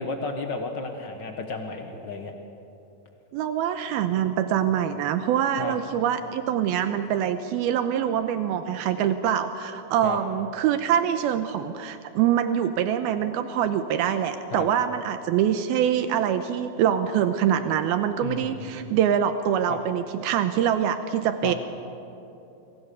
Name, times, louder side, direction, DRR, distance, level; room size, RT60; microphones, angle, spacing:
voice 1, 0.0-2.3 5.6-5.7 10.0-10.2 14.5-14.6 18.2-18.5 19.7-19.8 21.4-21.5, left 3 dB, 65° left, 4 dB, 1.1 m, -32 dB
voice 2, 3.3-21.6, right 9 dB, 80° right, 9 dB, 2.7 m, -24 dB
28.5 x 23.5 x 7.0 m, 2.9 s
omnidirectional pair, 4.5 m